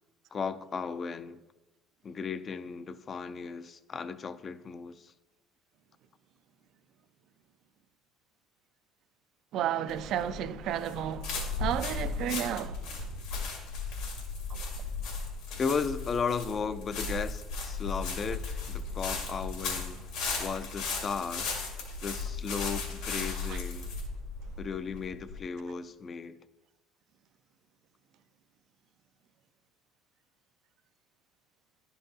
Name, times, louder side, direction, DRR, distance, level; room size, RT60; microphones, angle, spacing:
voice 1, 0.3-1.4 2.0-5.1 15.6-20.0 20.4-21.5 22.0-23.9 24.6-26.4, left 5 dB, 40° left, 0.4 m, -35 dB
voice 2, 9.5-13.1 23.5-23.6, right 10 dB, 65° right, 0.4 m, -33 dB
sound 1, 9.9-25.4, left 4 dB, 85° left, 2.2 m, -36 dB
10.5 x 5.4 x 2.8 m
supercardioid pair, 85°, 0 cm